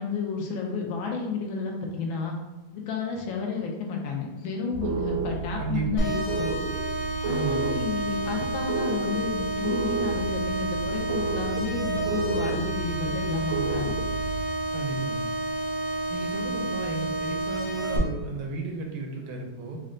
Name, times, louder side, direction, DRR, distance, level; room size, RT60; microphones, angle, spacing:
voice 1, 0.0-2.3 2.7-6.5 7.2-14.0, left 5 dB, 80° left, 0 dB, 1.4 m, -31 dB
sound 1, 4.7-14.5, right 4 dB, 75° right, 1.0 m, -32 dB
voice 2, 5.6-6.1 7.3-7.8 14.7-15.2 16.1-19.8, right 3 dB, 90° right, 1 dB, 1.6 m, -33 dB
sound 2, 6.0-18.0, right 1 dB, 60° left, 1.0 m, -30 dB
4.2 x 2.2 x 3.7 m, 1.1 s
omnidirectional pair, 2.2 m